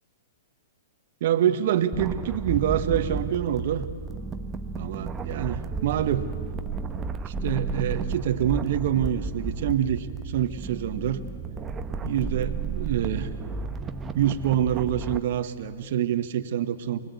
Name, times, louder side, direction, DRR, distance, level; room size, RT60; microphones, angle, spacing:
voice 1, 1.2-3.9 4.8-6.3 7.3-11.2 12.0-13.3 14.1-17.1, right 10 dB, 60° right, 9 dB, 1.4 m, -26 dB
sound 1, 1.9-15.2, right 4 dB, 20° right, 1.1 m, -33 dB
25.0 x 20.5 x 8.3 m, 2.1 s
hypercardioid pair, 125°, 0 cm